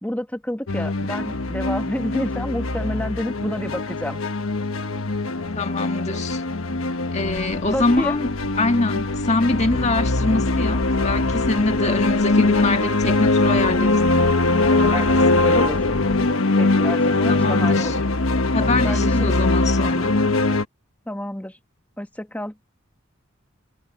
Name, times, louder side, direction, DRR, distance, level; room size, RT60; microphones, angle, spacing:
voice 1, 0.0-4.2 7.7-8.2 14.9-15.8 16.6-18.0 18.8-19.4 21.1-21.6 22.0-22.6, left 1 dB, 5° left, 1.2 m, -29 dB
sound 1, 0.7-20.6, left 2 dB, 85° left, 1.2 m, -21 dB
voice 2, 5.6-6.4 7.1-8.3 8.6-14.0 14.6-15.7 17.3-18.0 18.5-20.2, left 2 dB, 35° left, 1.8 m, -24 dB
sound 2, 7.1-16.3, left 1 dB, 50° left, 1.5 m, -38 dB
head